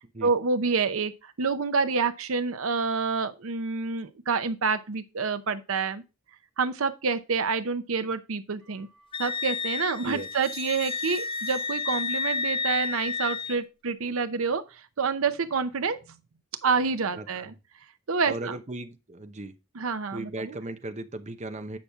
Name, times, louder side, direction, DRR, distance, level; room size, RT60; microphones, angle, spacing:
voice 1, 0.2-6.0 6.6-8.9 9.2-16.0 16.6-17.5 18.1-18.6 19.7-20.6, right 5 dB, 70° right, 0.7 m, -28 dB
sound 1, 8.6-9.7 10.2-12.6 13.0-13.6, right 1 dB, ahead, 2.7 m, -50 dB
Wind instrument woodwind instrument, 9.1-13.6, left 4 dB, 25° left, 0.4 m, -31 dB
voice 2, 18.3-19.5 20.1-21.8, right 2 dB, 30° right, 0.8 m, -37 dB
8.5 x 5.9 x 3.6 m
head